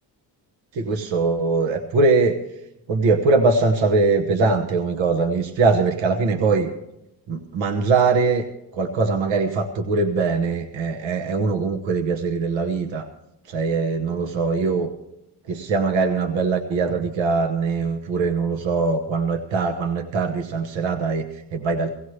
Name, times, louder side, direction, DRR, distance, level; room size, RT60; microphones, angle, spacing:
voice 1, 0.7-2.4 2.9-6.7 7.3-8.4 8.7-13.0 13.5-14.9 15.5-22.0, right 4 dB, 85° right, 6 dB, 1.2 m, -22 dB
17.5 x 17.0 x 3.2 m, 0.89 s
cardioid pair, 75°, 44 cm